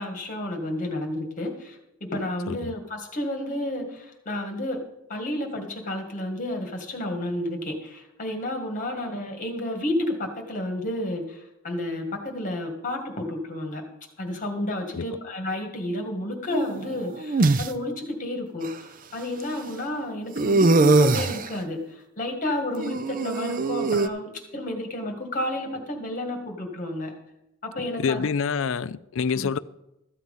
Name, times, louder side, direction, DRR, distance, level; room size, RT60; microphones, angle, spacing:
voice 1, 0.0-4.8 5.1-13.8 14.2-18.7 19.1-27.1 27.6-28.3 29.3-29.5, left 1 dB, 35° left, 1.9 m, -31 dB
sound 1, 16.5-17.7 18.6-18.7 20.4-21.5 22.8-24.1, right 3 dB, 40° right, 0.5 m, -21 dB
voice 2, 28.0-29.6, left 6 dB, 60° left, 0.4 m, -27 dB
13.5 x 7.6 x 5.4 m
head